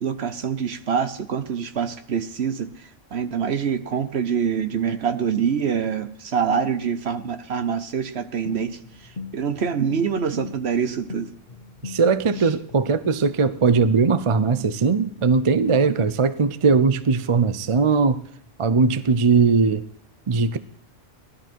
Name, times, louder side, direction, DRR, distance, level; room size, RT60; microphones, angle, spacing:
voice 1, 0.0-8.8 9.3-11.3 14.5-14.7, right 7 dB, 60° right, 1.2 m, -25 dB
sound 1, 8.5-16.2, left 4 dB, 45° left, 1.2 m, -40 dB
voice 2, 11.8-18.2 18.6-19.8 20.3-20.6, right 5 dB, 35° right, 0.5 m, -19 dB
18.5 x 12.5 x 4.6 m
omnidirectional pair, 1.2 m